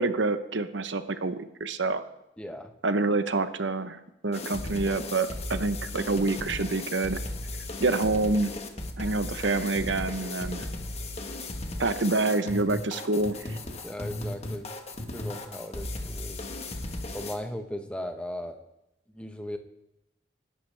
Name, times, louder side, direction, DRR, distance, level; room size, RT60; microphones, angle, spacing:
voice 1, 0.0-2.0 2.8-7.2 7.8-8.5 9.0-10.7 11.8-13.6, right 3 dB, 85° right, 10 dB, 0.9 m, -27 dB
voice 2, 2.4-2.7 7.8-8.0 13.8-14.7 15.1-16.4 17.1-18.6 19.1-19.6, left 1 dB, 5° left, 5 dB, 1.1 m, -37 dB
sound 1, 4.3-17.4, left 2 dB, 35° left, 1.4 m, -36 dB
25.5 x 12.0 x 3.4 m, 0.86 s
head